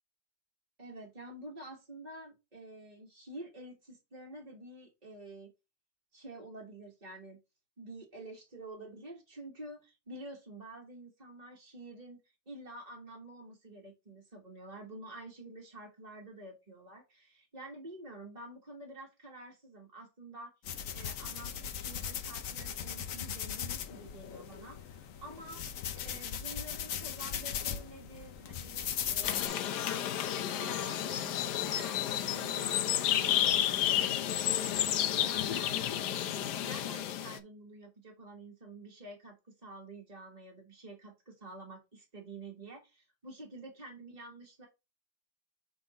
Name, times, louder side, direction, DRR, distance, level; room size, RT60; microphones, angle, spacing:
voice 1, 0.8-5.5 6.1-7.4 7.8-12.2 12.5-20.5 20.9-25.6 25.9-31.4 31.6-34.8 35.2-35.8 36.2-39.4 39.6-44.7, right 2 dB, 25° right, -2 dB, 1.4 m, -49 dB
sound 1, 20.6-29.5, left 8 dB, 60° left, 1.0 m, -38 dB
sound 2, 29.2-37.4, left 11 dB, 80° left, 1.3 m, -31 dB
6.1 x 3.9 x 3.9 m, 0.25 s
omnidirectional pair, 1.8 m